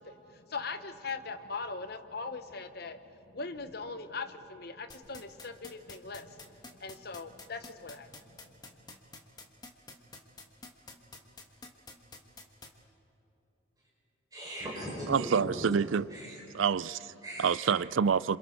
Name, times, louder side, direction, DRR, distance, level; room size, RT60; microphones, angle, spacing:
voice 1, 0.0-8.3 8.9-9.0, left 4 dB, 55° left, 1.0 m, -41 dB
sound 1, 4.9-12.7, left 3 dB, 20° left, 1.4 m, -47 dB
voice 2, 14.3-15.6 16.1-16.4 16.8-16.9 17.2-17.7, equal, 20° right, 6.9 m, -39 dB
voice 3, 15.1-16.1 16.5-17.1 17.4-18.4, right 6 dB, 80° right, 0.4 m, -27 dB
27.5 x 27.0 x 4.5 m
head